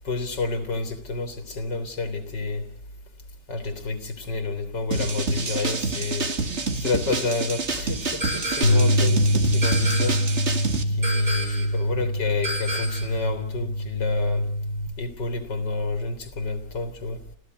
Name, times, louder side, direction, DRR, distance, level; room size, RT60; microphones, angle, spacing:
voice 1, 0.1-2.6 3.5-6.3 6.7-10.2 10.9-14.5 15.0-17.2, left 3 dB, 85° left, 9 dB, 3.5 m, -29 dB
sound 1, 4.9-10.8, right 4 dB, 40° right, 2.1 m, -28 dB
sound 2, 8.2-8.9 9.6-10.4 11.0-11.8 12.4-13.2, right 1 dB, 20° right, 4.4 m, -31 dB
Bass guitar, 8.6-14.9, equal, 65° left, 7.5 m, -24 dB
29.0 x 14.5 x 9.4 m, 0.72 s
omnidirectional pair, 1.9 m